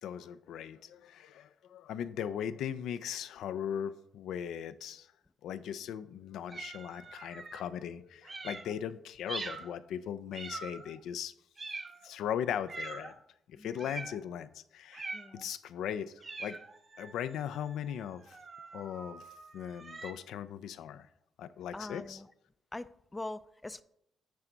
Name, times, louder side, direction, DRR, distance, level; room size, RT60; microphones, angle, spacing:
voice 1, 0.0-5.1 5.4-11.3 12.0-13.1 13.5-16.6 17.0-18.4 18.7-19.2 19.5-21.1 21.4-22.2, left 9 dB, 85° left, 0.4 m, -38 dB
sound 1, 6.5-7.6 8.2-8.7 9.3-9.7 10.3-11.0 11.6-12.1 12.7-13.1 13.8-14.2 14.9-15.4 16.2-20.1, right 3 dB, 35° right, 0.9 m, -44 dB
voice 2, 15.1-15.5 21.7-22.3 22.7-23.8, left 2 dB, 15° left, 0.4 m, -43 dB
9.6 x 3.9 x 4.5 m
cardioid pair, 85°, 0 cm